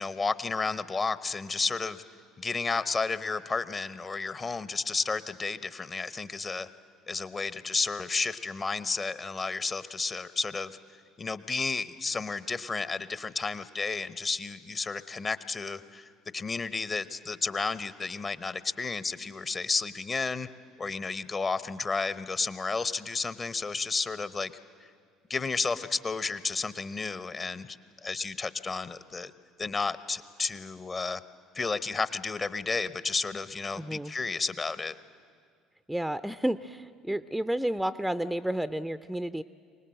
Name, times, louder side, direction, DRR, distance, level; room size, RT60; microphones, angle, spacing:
voice 1, 0.0-2.0 2.4-6.7 7.1-10.8 11.2-20.5 20.8-24.5 25.3-29.3 29.6-31.2 31.5-34.9, left 4 dB, 30° left, 15 dB, 0.8 m, -32 dB
voice 2, 33.8-34.1 35.9-39.4, right 1 dB, 5° right, 14 dB, 0.5 m, -31 dB
24.5 x 19.0 x 7.6 m, 2.1 s
hypercardioid pair, 60°, 0 cm